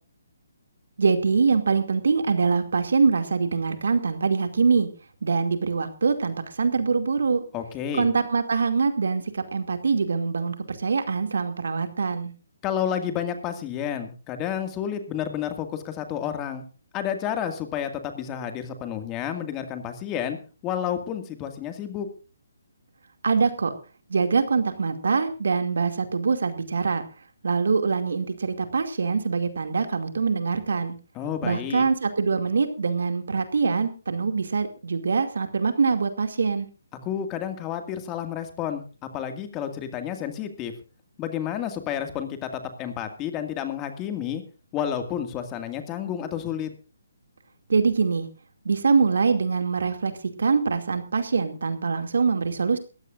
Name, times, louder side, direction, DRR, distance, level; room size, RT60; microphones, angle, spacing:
voice 1, 1.0-4.9 5.2-7.4 7.9-12.3 23.2-23.7 24.1-27.0 27.4-30.9 31.4-36.7 47.7-48.3 48.6-50.1 50.4-52.8, right 5 dB, 75° right, 8 dB, 2.4 m, -24 dB
voice 2, 7.5-8.1 12.6-16.6 16.9-20.4 20.6-22.1 31.2-31.8 37.0-38.8 39.1-40.7 41.2-44.4 44.7-46.7, left 9 dB, 20° left, 7 dB, 2.1 m, -30 dB
21.0 x 15.0 x 2.6 m, 0.34 s
hypercardioid pair, 155°, 0 cm